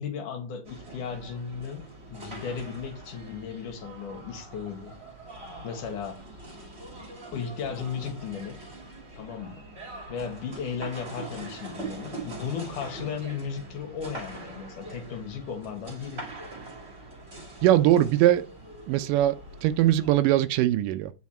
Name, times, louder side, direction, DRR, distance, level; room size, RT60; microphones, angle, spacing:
voice 1, 0.0-4.9 5.6-6.2 7.3-8.7 9.1-9.6 10.1-16.3, left 6 dB, 75° left, 3.0 m, -35 dB
sound 1, 0.6-20.1, right 2 dB, 20° right, 2.8 m, -43 dB
voice 2, 17.6-18.5 18.9-21.1, right 13 dB, 85° right, 2.2 m, -21 dB
9.4 x 5.5 x 4.3 m
omnidirectional pair, 3.8 m